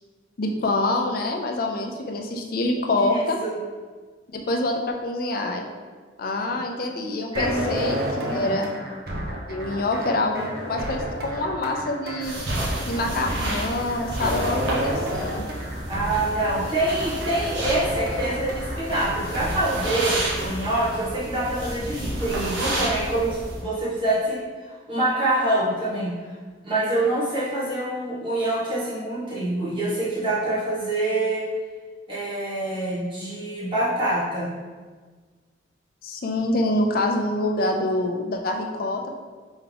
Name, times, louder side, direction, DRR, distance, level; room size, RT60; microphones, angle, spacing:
voice 1, 0.4-3.4 4.3-5.6 6.2-8.8 9.2-12.4 12.9-15.4 36.0-39.2, left 2 dB, 50° left, 2 dB, 0.4 m, -26 dB
voice 2, 3.0-3.5 6.5-6.6 7.3-7.6 8.3-8.6 15.9-26.3 26.6-31.4 32.1-34.5, right 1 dB, 25° right, -9 dB, 1.3 m, -26 dB
sound 1, 7.3-21.0, equal, 50° right, 0.6 m, -31 dB
sound 2, 12.2-23.6, right 1 dB, 75° right, 1.1 m, -31 dB
3.5 x 3.5 x 3.4 m, 1.5 s
head